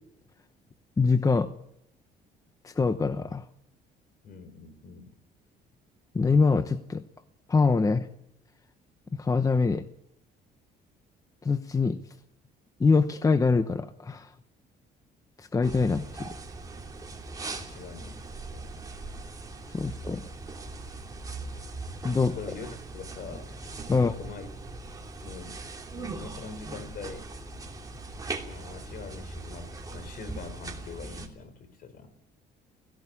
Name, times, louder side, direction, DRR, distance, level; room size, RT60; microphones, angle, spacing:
voice 1, 1.0-1.5 2.6-3.4 6.1-7.0 7.5-8.0 9.2-9.8 11.4-12.0 12.8-14.3 15.4-16.3 19.7-20.2 22.0-22.3 23.9-24.1, left 4 dB, 20° left, 11 dB, 0.9 m, -24 dB
voice 2, 4.2-5.1 17.6-18.8 22.2-23.6 23.9-24.5 25.1-25.6 26.0-27.3 28.4-32.1, left 5 dB, 60° left, 12 dB, 3.9 m, -43 dB
sound 1, 15.6-31.3, right 3 dB, 20° right, 3.0 m, -40 dB
16.5 x 16.0 x 9.8 m, 0.77 s
cardioid pair, 110°, 17 cm